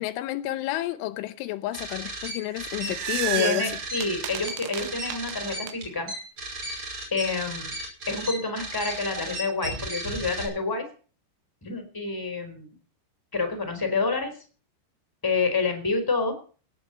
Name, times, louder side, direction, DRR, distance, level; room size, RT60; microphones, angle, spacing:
voice 1, 0.0-3.7, left 15 dB, 80° left, 3.2 m, -30 dB
sound 1, 1.7-10.4, right 1 dB, 25° right, 6.6 m, -35 dB
sound 2, 2.4-5.7, right 14 dB, 80° right, 2.5 m, -33 dB
voice 2, 3.3-6.1 7.1-7.7 8.1-10.9 11.6-12.7 13.3-14.3 15.2-16.3, left 3 dB, 5° left, 3.0 m, -28 dB
17.5 x 8.0 x 8.2 m
omnidirectional pair, 5.6 m